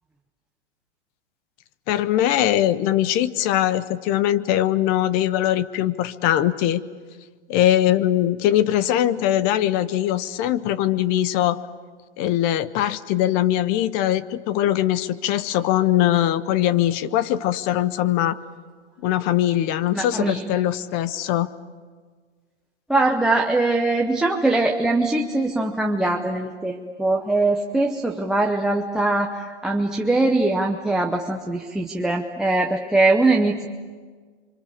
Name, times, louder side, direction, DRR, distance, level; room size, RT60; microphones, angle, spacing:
voice 1, 1.9-6.8 7.5-11.6 12.2-18.4 19.0-21.5, left 12 dB, 25° left, 16 dB, 0.7 m, -21 dB
voice 2, 19.9-20.4 22.9-33.7, right 2 dB, ahead, 0 dB, 0.8 m, -22 dB
27.5 x 25.0 x 7.2 m, 1.5 s
hypercardioid pair, 145°, 34 cm